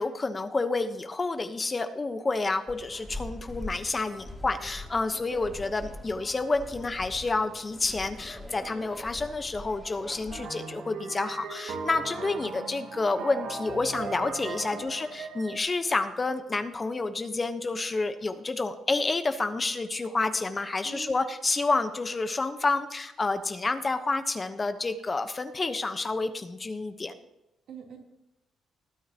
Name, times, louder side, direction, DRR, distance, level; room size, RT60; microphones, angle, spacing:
voice 1, 0.0-27.1, left 3 dB, 25° left, 9 dB, 1.0 m, -29 dB
sound 1, 2.7-10.4, left 1 dB, ahead, 2.5 m, -42 dB
sound 2, 10.3-15.6, right 4 dB, 90° right, 2.1 m, -38 dB
voice 2, 20.8-21.1 27.7-28.0, right 5 dB, 70° right, -1 dB, 3.2 m, -43 dB
19.0 x 9.2 x 2.9 m, 0.92 s
cardioid pair, 90°, 0 cm